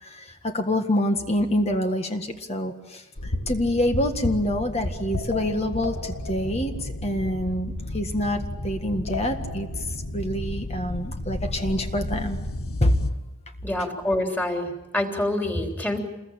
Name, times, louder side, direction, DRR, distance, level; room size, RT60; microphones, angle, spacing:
voice 1, 0.0-12.4 12.8-13.1, left 1 dB, 30° left, 5 dB, 1.7 m, -26 dB
sound 1, 3.2-13.1, left 1 dB, 90° left, 1.8 m, -32 dB
voice 2, 13.6-16.0, left 1 dB, 10° left, 2 dB, 3.5 m, -26 dB
28.0 x 21.5 x 8.9 m, 1.0 s
head